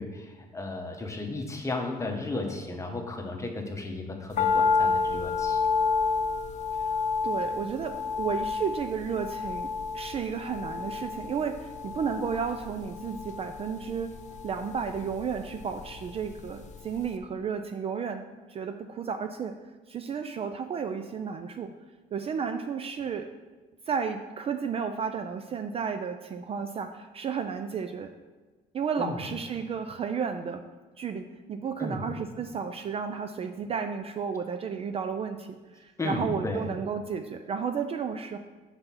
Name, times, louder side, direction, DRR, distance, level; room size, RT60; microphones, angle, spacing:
voice 1, 0.0-5.6 29.0-29.2 31.8-32.0 36.0-36.6, left 2 dB, 15° left, 2 dB, 1.0 m, -34 dB
sound 1, 4.4-16.6 16.9-17.0, left 4 dB, 45° left, 0.5 m, -30 dB
voice 2, 7.2-14.1 14.4-19.6 19.9-21.7 22.1-23.3 23.9-28.1 28.7-30.6 31.0-38.4, right 6 dB, 35° right, 7 dB, 0.4 m, -33 dB
5.6 x 4.1 x 5.7 m, 1.3 s
cardioid pair, 110°, 17 cm